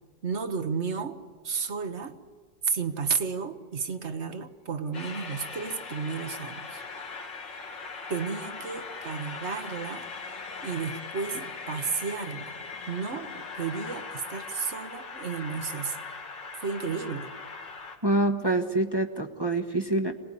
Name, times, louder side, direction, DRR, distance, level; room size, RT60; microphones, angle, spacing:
voice 1, 0.2-1.2 1.4-2.2 2.7-6.8 8.1-10.1 10.6-12.6 12.9-16.0 16.6-17.3, right 5 dB, 40° right, 9 dB, 1.3 m, -32 dB
Train, 4.9-18.0, left 4 dB, 75° left, 2.9 m, -40 dB
sound 1, 7.1-15.8, left 6 dB, 60° left, 1.5 m, -50 dB
voice 2, 18.0-20.1, right 2 dB, 15° right, 2 dB, 1.2 m, -26 dB
26.0 x 19.5 x 9.8 m, 1.5 s
omnidirectional pair, 1.9 m